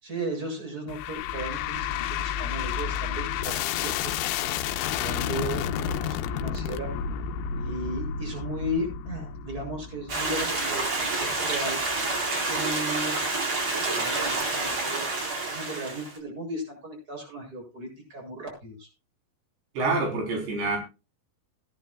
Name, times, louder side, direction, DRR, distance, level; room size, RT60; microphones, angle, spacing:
voice 1, 0.0-4.1 4.9-6.9 7.5-11.8 12.5-13.2 13.8-18.9, right 1 dB, 20° right, 1 dB, 7.8 m, -36 dB
sound 1, 0.9-12.2, left 8 dB, 85° left, 3.1 m, -31 dB
Stream, 10.1-16.2, right 3 dB, 35° right, 4.9 m, -28 dB
voice 2, 19.8-20.8, right 3 dB, 70° right, 1 dB, 6.1 m, -26 dB
21.0 x 10.5 x 2.4 m, 0.29 s
omnidirectional pair, 5.1 m